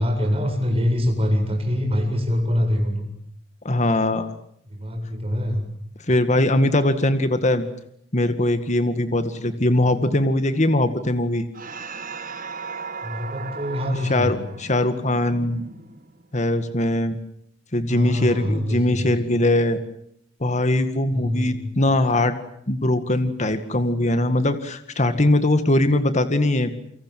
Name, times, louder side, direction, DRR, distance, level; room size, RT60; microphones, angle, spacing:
voice 1, 0.0-3.1 4.7-5.6 13.0-14.4 17.9-19.4 21.1-21.6, left 1 dB, 35° right, 4 dB, 7.9 m, -24 dB
voice 2, 3.6-4.3 6.1-7.7 8.1-11.5 14.0-15.6 16.3-17.2 17.7-19.8 20.4-22.4 22.7-26.7, left 1 dB, 40° left, 9 dB, 2.1 m, -21 dB
sound 1, 11.5-16.3, right 4 dB, 50° right, 1.8 m, -36 dB
29.0 x 25.0 x 7.7 m, 0.69 s
head